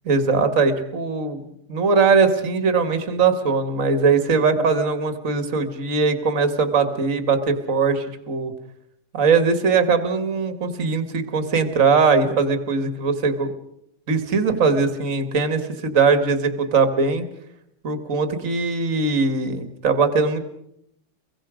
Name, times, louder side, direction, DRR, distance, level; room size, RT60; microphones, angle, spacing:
voice 1, 0.1-8.5 9.1-13.5 14.1-17.2 17.8-20.4, right 4 dB, 40° right, 9 dB, 2.2 m, -20 dB
30.0 x 23.0 x 5.1 m, 0.76 s
omnidirectional pair, 2.2 m